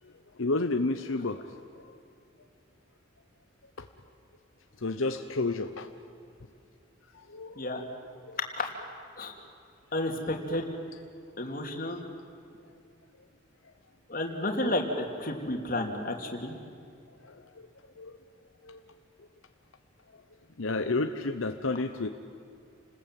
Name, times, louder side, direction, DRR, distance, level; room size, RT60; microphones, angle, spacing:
voice 1, 0.4-1.5 4.8-5.9 7.3-7.6 8.3-8.4 17.3-17.4 18.0-18.1 18.6-18.8 20.6-22.1, left 3 dB, 80° left, 7 dB, 1.0 m, -30 dB
voice 2, 9.9-10.6 11.4-12.0 14.1-16.5, left 1 dB, 45° left, 3 dB, 3.0 m, -31 dB
29.0 x 20.0 x 9.1 m, 2.4 s
head